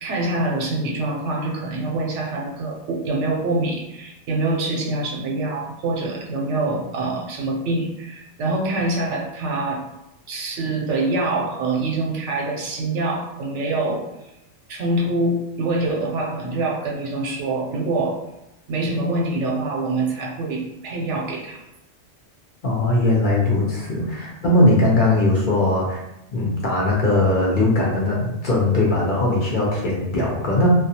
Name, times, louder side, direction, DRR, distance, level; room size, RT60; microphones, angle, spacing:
voice 1, 0.0-9.8 10.3-14.1 14.7-18.2 18.7-21.6 24.0-24.2, right 2 dB, 80° right, -1 dB, 0.9 m, -25 dB
voice 2, 22.6-26.0 26.3-30.7, left 2 dB, 60° left, -3 dB, 0.6 m, -20 dB
2.3 x 2.3 x 2.7 m, 0.89 s
omnidirectional pair, 1.2 m